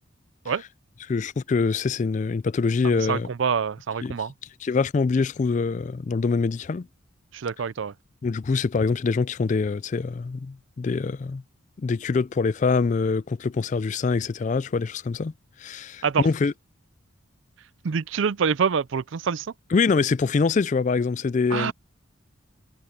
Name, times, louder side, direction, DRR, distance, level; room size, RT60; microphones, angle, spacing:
voice 1, 1.1-3.3 4.0-4.2 4.6-6.9 8.2-11.4 11.8-15.3 15.6-16.5 19.7-21.7, left 4 dB, 35° left, 0.3 m, -24 dB
voice 2, 2.8-4.3 7.3-7.9 16.0-16.3 17.8-19.5 21.5-21.7, right 6 dB, 65° right, 0.4 m, -26 dB
head